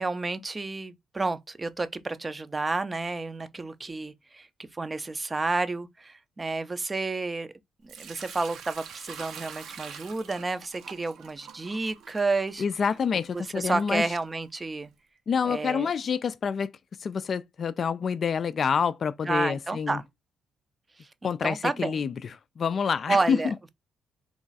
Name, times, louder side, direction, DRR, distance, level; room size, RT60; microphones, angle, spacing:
voice 1, 0.0-7.5 7.8-12.6 13.1-14.9 15.4-15.9 19.2-20.1 21.0-22.0 23.1-23.7, right 3 dB, 25° right, 0.5 m, -31 dB
Sink (filling or washing) / Liquid, 7.9-14.8, right 7 dB, 75° right, 0.6 m, -46 dB
voice 2, 12.6-14.1 15.3-16.7 17.0-20.0 21.2-22.1 22.6-23.5, left 6 dB, 50° left, 0.3 m, -27 dB
3.1 x 2.4 x 3.9 m
cardioid pair, 90°, 0 cm